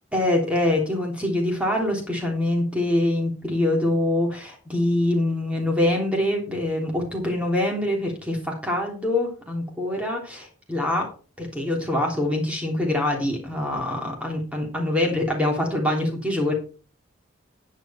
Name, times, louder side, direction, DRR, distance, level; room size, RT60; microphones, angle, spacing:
voice 1, 0.1-11.1 11.4-16.6, left 1 dB, 5° right, 0 dB, 3.4 m, -24 dB
10.5 x 8.5 x 4.4 m, 0.37 s
head